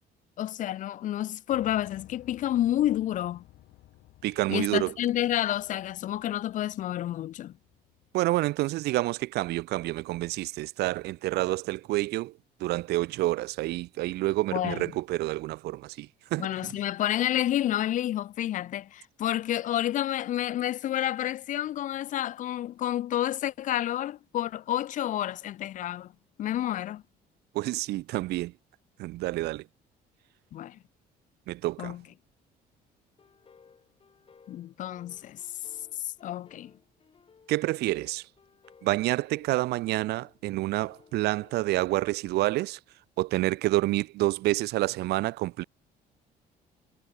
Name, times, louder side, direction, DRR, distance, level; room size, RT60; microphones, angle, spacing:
voice 1, 0.4-3.4 4.5-7.5 14.5-14.8 16.4-26.1 26.4-27.0 30.5-30.8 31.8-32.0 34.5-35.4 36.0-36.7, left 12 dB, 50° left, 0.4 m, -29 dB
Piano, 1.5-9.5, left 16 dB, 80° left, 5.4 m, -57 dB
voice 2, 4.2-4.9 8.1-12.3 12.6-16.8 27.5-28.5 29.0-29.7 31.5-32.0 37.5-38.3 38.8-42.8 43.2-45.6, right 18 dB, 75° right, 0.5 m, -28 dB
sound 1, 33.2-41.9, left 6 dB, 35° left, 3.8 m, -59 dB
cardioid pair, 110°, 17 cm